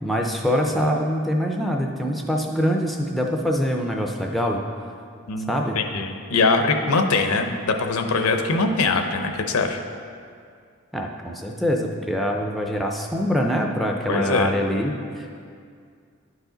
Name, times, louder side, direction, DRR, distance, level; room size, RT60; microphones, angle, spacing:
voice 1, 0.0-4.6 5.5-5.8 10.9-15.3, equal, ahead, 1 dB, 0.4 m, -24 dB
voice 2, 5.3-9.8 14.1-14.5, left 3 dB, 80° left, 6 dB, 0.6 m, -22 dB
11.0 x 4.8 x 3.8 m, 2.3 s
head